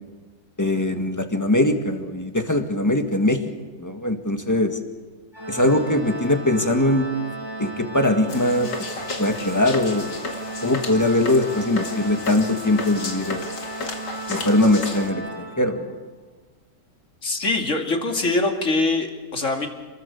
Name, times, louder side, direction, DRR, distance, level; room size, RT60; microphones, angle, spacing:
voice 1, 0.6-3.4 3.8-4.8 5.5-7.1 7.6-8.7 9.2-10.1 10.6-13.4 14.3-16.0, left 1 dB, 10° left, 5 dB, 1.9 m, -21 dB
Organ, 5.3-16.1, right 2 dB, 15° right, 2.8 m, -35 dB
sound 1, 8.3-15.1, left 3 dB, 75° left, 3.0 m, -33 dB
voice 2, 17.2-19.7, left 2 dB, 45° left, 3 dB, 2.9 m, -23 dB
29.0 x 21.0 x 7.2 m, 1.3 s
omnidirectional pair, 1.9 m